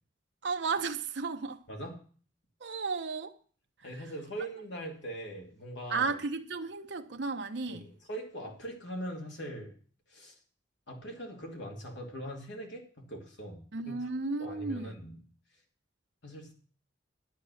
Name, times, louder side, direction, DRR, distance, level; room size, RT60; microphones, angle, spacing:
voice 1, 0.4-1.6 2.6-3.3 5.9-7.9 13.7-15.0, right 4 dB, 65° right, 0.7 m, -33 dB
voice 2, 1.7-2.0 3.8-6.1 7.7-9.8 10.1-10.4 10.9-14.1 14.4-15.1 16.2-16.5, right 1 dB, 70° left, 2.7 m, -41 dB
10.5 x 8.5 x 6.4 m
head